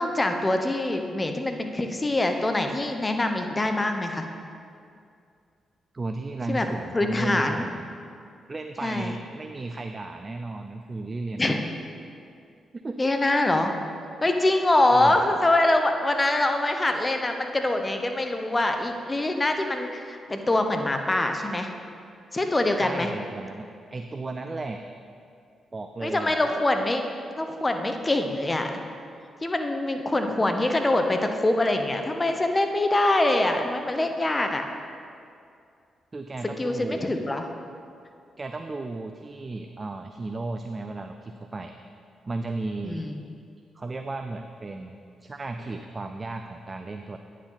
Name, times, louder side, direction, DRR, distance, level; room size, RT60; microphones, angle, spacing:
voice 1, 0.0-4.3 6.5-6.7 6.9-7.6 8.8-9.1 11.4-11.6 13.0-13.7 14.2-21.7 22.3-23.1 26.0-27.0 27.4-28.7 29.4-34.6 36.6-37.5 42.8-43.2, left 2 dB, 25° left, 5 dB, 0.9 m, -24 dB
voice 2, 5.9-7.9 8.5-11.6 12.7-13.0 14.9-15.3 22.8-24.8 25.7-26.3 36.1-37.1 38.4-41.7 42.3-43.0 43.8-47.2, right 3 dB, 35° right, 6 dB, 0.4 m, -34 dB
9.6 x 6.4 x 4.0 m, 2.4 s
supercardioid pair, 50°, 0 cm